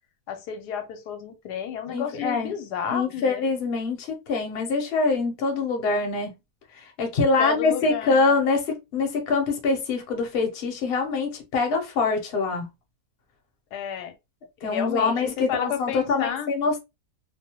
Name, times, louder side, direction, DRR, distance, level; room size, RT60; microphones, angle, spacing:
voice 1, 0.3-3.5 7.4-8.2 13.7-14.1 14.6-16.5, left 8 dB, 85° left, 1.2 m, -31 dB
voice 2, 1.9-2.5 2.9-6.3 6.7-12.6 14.6-16.8, left 4 dB, 50° left, 0.8 m, -24 dB
2.7 x 2.1 x 2.8 m
omnidirectional pair, 1.7 m